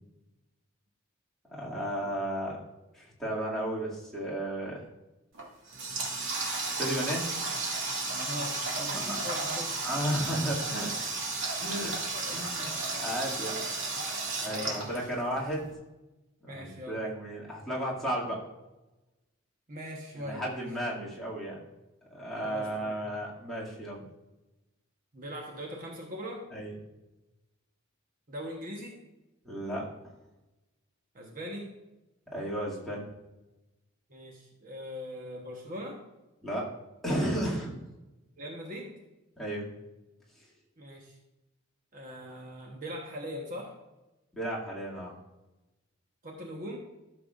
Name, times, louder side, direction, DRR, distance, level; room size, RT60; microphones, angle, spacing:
voice 1, 1.5-2.6 2.9-4.8 6.7-7.3 8.9-9.2 9.8-11.0 11.6-12.0 12.3-12.7 13.0-13.6 13.9-14.0 14.4-15.7 16.4-18.4 20.2-21.6 22.1-24.0 26.5-26.7 29.4-29.9 32.3-33.1 36.4-36.7 37.0-37.7 39.4-39.7 44.3-45.1, right 1 dB, ahead, -7 dB, 2.2 m, -33 dB
Water tap faucet, 5.3-15.5, right 3 dB, 65° right, 2.0 m, -33 dB
voice 2, 8.1-9.7 14.4-15.1 16.5-17.0 19.7-20.7 22.4-23.0 25.1-26.5 28.3-29.0 31.1-31.8 34.1-36.0 38.4-39.0 40.8-41.2 41.9-43.8 46.2-46.8, equal, 40° right, 0 dB, 1.1 m, -40 dB
13.5 x 6.9 x 2.5 m, 1.0 s
head